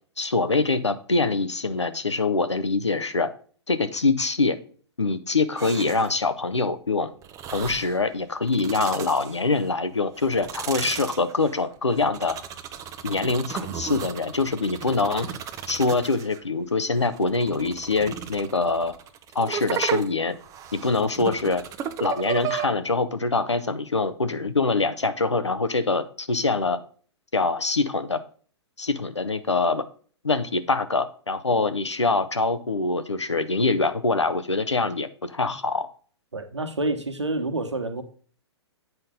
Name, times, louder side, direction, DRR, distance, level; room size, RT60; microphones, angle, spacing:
voice 1, 0.2-3.3 3.7-4.6 5.0-7.1 7.5-12.4 13.0-15.3 15.7-18.9 19.3-20.3 20.7-21.6 22.0-26.8 27.3-28.2 28.8-29.8 30.2-35.9, left 3 dB, 90° left, 11 dB, 0.9 m, -24 dB
sound 1, 5.6-6.2 7.2-8.0 8.4-9.7 10.2-16.4 17.0-22.7, right 8 dB, 25° right, 0.7 m, -35 dB
voice 2, 36.3-38.0, right 2 dB, 85° right, 7 dB, 1.3 m, -28 dB
8.2 x 5.4 x 3.7 m, 0.44 s
figure-of-eight pair, 115°, 14 cm